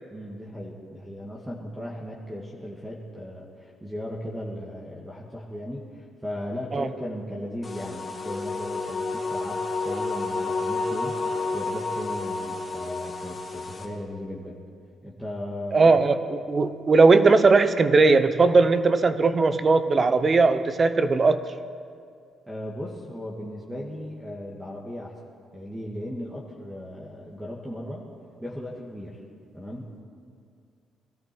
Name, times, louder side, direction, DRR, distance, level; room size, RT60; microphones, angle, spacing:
voice 1, 0.1-11.2 11.5-14.6 15.0-16.0 22.5-25.1 25.5-28.0 28.4-29.2 29.5-29.9, left 1 dB, 5° right, -3 dB, 1.9 m, -36 dB
sound 1, 7.6-13.8, left 3 dB, 25° left, 2.1 m, -30 dB
voice 2, 15.7-21.4, right 3 dB, 35° right, 11 dB, 0.8 m, -19 dB
21.0 x 13.5 x 4.5 m, 2.2 s
cardioid pair, 90°, 0 cm